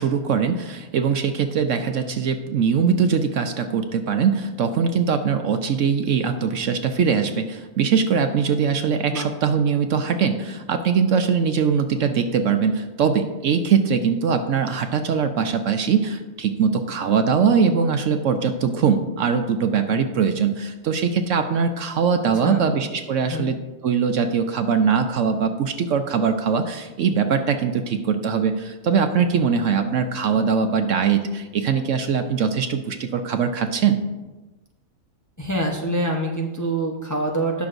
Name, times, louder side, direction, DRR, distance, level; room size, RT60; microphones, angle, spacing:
voice 1, 0.0-23.6 23.8-34.0, right 6 dB, 65° right, 7 dB, 0.9 m, -21 dB
voice 2, 35.4-37.7, right 1 dB, 15° left, 0 dB, 0.7 m, -25 dB
18.5 x 6.2 x 2.6 m, 1.1 s
omnidirectional pair, 1.5 m